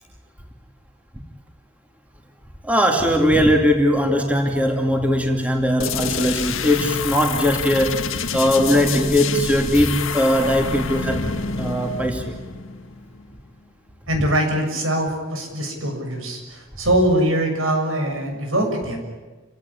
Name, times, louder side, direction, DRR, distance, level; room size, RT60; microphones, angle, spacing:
voice 1, 2.6-8.1 8.3-11.3 11.6-12.4, equal, 5° right, 2 dB, 2.5 m, -19 dB
sound 1, 5.8-13.4, left 5 dB, 80° left, 1.7 m, -28 dB
voice 2, 14.1-19.0, right 1 dB, 85° right, 3 dB, 7.0 m, -22 dB
29.5 x 17.0 x 9.9 m, 1.3 s
head